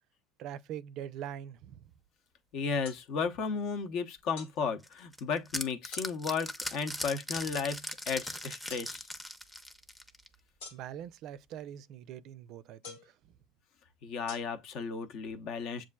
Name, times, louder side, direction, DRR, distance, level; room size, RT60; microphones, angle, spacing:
voice 1, 0.4-1.9 10.7-13.2, right 10 dB, 60° right, 0.4 m, -43 dB
voice 2, 2.5-9.1 14.0-15.8, left 5 dB, 60° left, 0.7 m, -34 dB
sound 1, 2.8-3.0 4.4-4.6 5.9-6.1 7.3-7.5 8.7-8.9 10.6-11.1 12.8-13.2 14.3-14.4, left 5 dB, 85° left, 1.2 m, -46 dB
sound 2, 4.8-10.4, left 1 dB, 10° left, 0.6 m, -39 dB
7.2 x 2.4 x 2.3 m
supercardioid pair, 100°, 0 cm